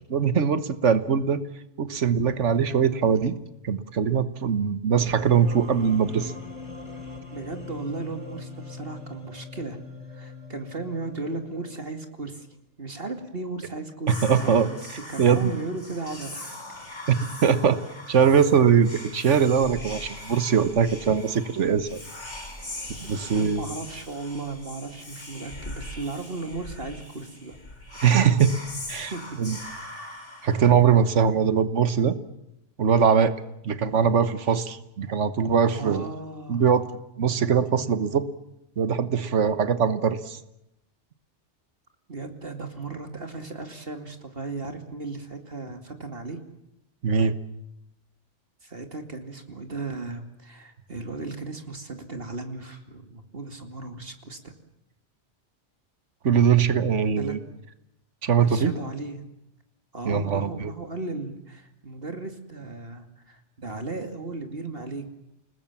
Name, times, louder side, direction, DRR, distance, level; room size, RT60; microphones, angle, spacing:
voice 1, 0.1-1.4 1.8-3.4 3.6-6.3 14.2-14.7 15.2-15.5 17.1-17.8 18.1-22.0 23.1-23.7 28.0-28.6 28.9-29.1 29.4-29.6 30.4-32.2 32.8-33.3 33.6-36.1 36.5-36.9 37.2-38.3 38.8-40.4 47.0-47.3 56.2-57.4 58.2-58.7 60.0-60.7, right 7 dB, 80° right, 12 dB, 1.6 m, -21 dB
sound 1, 5.0-12.0, left 4 dB, 25° right, 4.1 m, -41 dB
voice 2, 7.3-9.8 10.1-12.5 12.8-14.8 15.1-16.5 23.2-27.6 29.1-29.4 35.6-36.6 42.1-46.4 48.6-54.5 57.2-57.4 58.4-59.2 59.9-65.1, right 3 dB, 50° right, 6 dB, 2.7 m, -36 dB
Whispering, 14.1-31.2, left 1 dB, 75° left, 5.5 m, -41 dB
29.5 x 20.5 x 7.4 m, 0.84 s
omnidirectional pair, 1.2 m